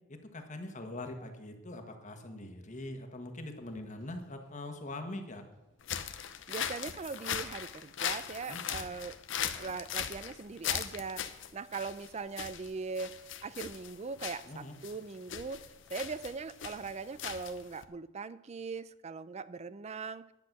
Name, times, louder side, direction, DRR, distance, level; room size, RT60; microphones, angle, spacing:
voice 1, 0.1-5.5 8.5-8.6 14.5-14.7, left 1 dB, 40° left, 5 dB, 1.4 m, -43 dB
Wind / Boat Water vehicle, 3.6-12.2, equal, 85° right, 5.1 m, -65 dB
sound 1, 5.8-17.8, left 9 dB, 65° left, 0.7 m, -39 dB
voice 2, 6.5-15.6 15.9-20.3, right 4 dB, 35° right, 16 dB, 0.4 m, -40 dB
10.5 x 8.5 x 6.0 m, 0.96 s
head